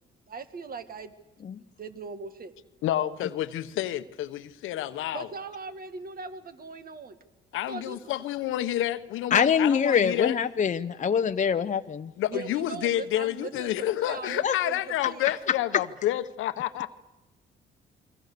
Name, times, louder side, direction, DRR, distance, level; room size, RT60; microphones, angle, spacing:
voice 1, 0.3-1.1 1.8-2.5 5.1-7.2 7.7-8.1 12.3-15.3, right 4 dB, 45° right, 1.9 m, -40 dB
voice 2, 2.8-5.3 7.5-10.4 12.2-16.9, left 13 dB, 90° left, 1.1 m, -29 dB
voice 3, 9.3-12.1 14.4-14.5, left 7 dB, 40° left, 0.8 m, -24 dB
29.5 x 22.5 x 6.8 m
cardioid pair, 90°, 20 cm